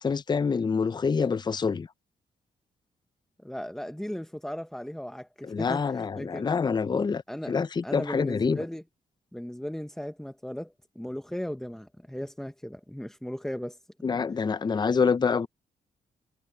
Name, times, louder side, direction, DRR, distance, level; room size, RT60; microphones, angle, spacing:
voice 1, 0.0-1.9 5.4-7.2 7.5-8.6 14.0-15.5, left 5 dB, 25° left, 0.5 m, -26 dB
voice 2, 3.4-6.5 7.3-7.6 7.8-8.8 9.3-14.2, equal, 5° left, 0.8 m, -37 dB
cardioid pair, 85°, 16 cm